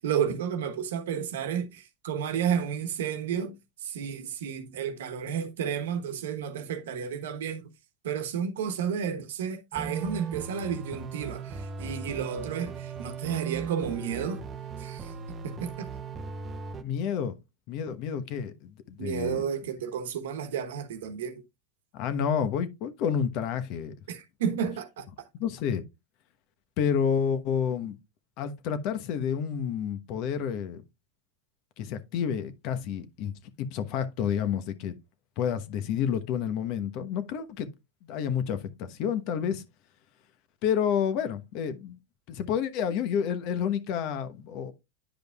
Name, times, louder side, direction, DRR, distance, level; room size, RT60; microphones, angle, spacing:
voice 1, 0.0-3.5 3.8-7.7 8.0-14.4 14.8-15.1 15.4-15.9 19.0-21.4 24.1-25.1, right 7 dB, 80° right, 1.1 m, -32 dB
sound 1, 9.7-16.8, right 5 dB, 30° right, 0.7 m, -37 dB
voice 2, 16.8-17.3 17.7-19.4 21.9-23.9 25.4-25.8 26.8-28.0 28.4-30.8 31.8-34.9 35.4-37.7 38.0-39.6 40.6-42.0 42.3-44.7, left 8 dB, 55° left, 1.1 m, -29 dB
10.0 x 5.2 x 2.4 m
hypercardioid pair, 115°, 0 cm